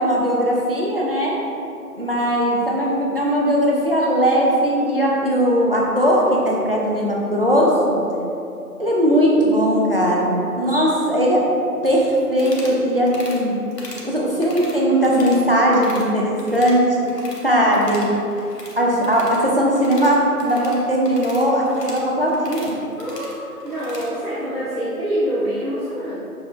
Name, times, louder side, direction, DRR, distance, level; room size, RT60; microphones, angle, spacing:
voice 1, 0.0-1.4 2.0-8.0 8.8-11.4 11.8-13.5 14.0-17.1 17.4-18.1 18.8-22.7, equal, 40° right, -4 dB, 0.6 m, -19 dB
sound 1, 12.4-12.8 13.1-13.4 13.7-14.1 14.4-15.4 15.7-16.1 16.4-17.5 17.7-24.1, left 1 dB, 85° left, 1.1 m, -40 dB
voice 2, 23.0-26.1, equal, 60° right, -11 dB, 1.1 m, -26 dB
6.9 x 3.2 x 2.4 m, 2.7 s
figure-of-eight pair, 165°, 47 cm